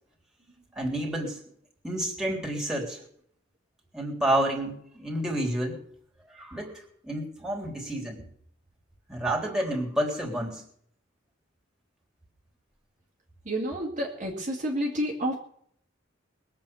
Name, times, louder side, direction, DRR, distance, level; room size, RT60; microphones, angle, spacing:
voice 1, 0.8-1.4 1.8-3.0 3.9-5.8 6.3-8.2 9.1-10.6, right 1 dB, 5° right, -2 dB, 3.5 m, -29 dB
voice 2, 13.5-15.4, equal, 40° right, -1 dB, 2.4 m, -29 dB
21.0 x 7.7 x 7.1 m, 0.65 s
head